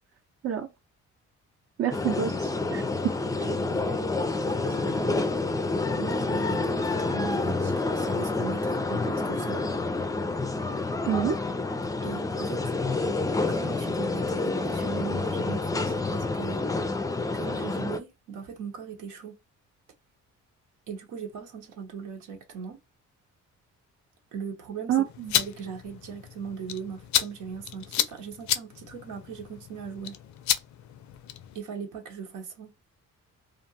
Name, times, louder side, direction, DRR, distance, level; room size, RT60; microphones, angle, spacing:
voice 1, 1.8-3.2 4.6-4.8 5.0-5.1 11.1-11.4 24.9-25.3, right 9 dB, 50° right, 0.6 m, -28 dB
sound 1, 1.9-18.0, left 3 dB, 10° left, 0.4 m, -28 dB
voice 2, 3.4-5.2 5.9-9.7 12.0-12.8 13.5-16.7 17.3-19.4 20.9-22.8 24.3-25.0 25.3-30.2 31.5-32.9, right 6 dB, 90° right, 0.9 m, -39 dB
sound 2, 25.1-31.6, left 11 dB, 70° left, 0.5 m, -32 dB
2.5 x 2.2 x 2.6 m
cardioid pair, 90°, 30 cm